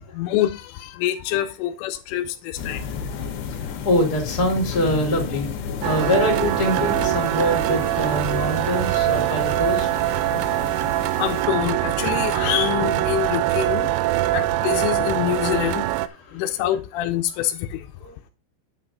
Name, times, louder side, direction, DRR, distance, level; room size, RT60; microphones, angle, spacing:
voice 1, 0.1-2.9 11.2-13.9 14.3-15.9 16.3-17.9, left 12 dB, 85° left, 3.2 m, -25 dB
sound 1, 2.6-11.4, left 6 dB, 65° left, 3.3 m, -33 dB
voice 2, 3.2-5.5 5.8-9.9 16.3-16.4 18.0-18.2, equal, 25° left, 2.6 m, -24 dB
sound 2, 5.8-16.1, right 15 dB, 85° right, 2.5 m, -23 dB
9.8 x 8.2 x 3.7 m
omnidirectional pair, 5.6 m